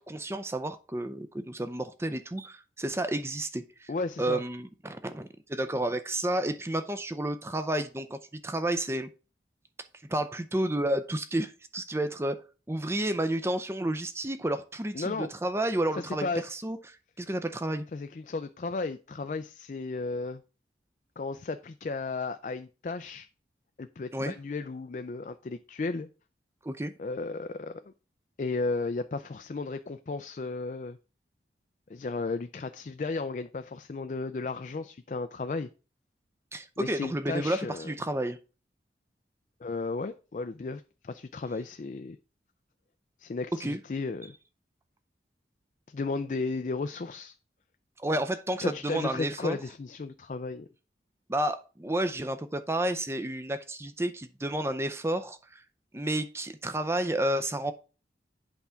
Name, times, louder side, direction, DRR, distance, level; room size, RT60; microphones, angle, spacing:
voice 1, 0.0-3.9 4.2-9.1 10.1-12.4 12.7-16.8 17.2-17.9 24.1-24.3 26.6-26.9 36.5-38.4 43.6-43.8 48.0-49.6 51.3-55.6 55.9-57.7, right 1 dB, 15° right, 0.5 m, -31 dB
voice 2, 3.9-4.4 14.9-15.3 15.9-16.4 17.9-20.4 21.2-23.3 23.8-26.1 27.0-27.9 28.4-31.0 31.9-35.7 36.8-37.9 39.6-42.2 43.2-44.3 45.9-47.3 48.6-50.7, left 3 dB, 45° left, 0.4 m, -34 dB
8.2 x 3.6 x 5.7 m
head